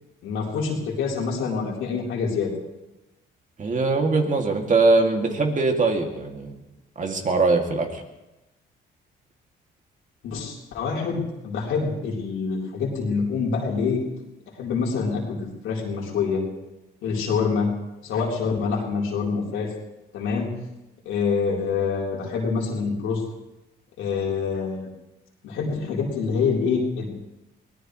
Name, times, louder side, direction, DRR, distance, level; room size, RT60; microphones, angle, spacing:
voice 1, 0.2-2.5 10.2-14.0 14.6-16.4 17.0-17.7 18.0-19.7 20.1-20.5 21.0-23.2 24.0-24.9 25.4-27.2, left 5 dB, 90° left, -3 dB, 4.0 m, -26 dB
voice 2, 3.6-6.6 7.0-8.0, right 3 dB, 40° right, 2 dB, 2.5 m, -22 dB
23.0 x 18.0 x 3.2 m, 0.98 s
cardioid pair, 90°, 20 cm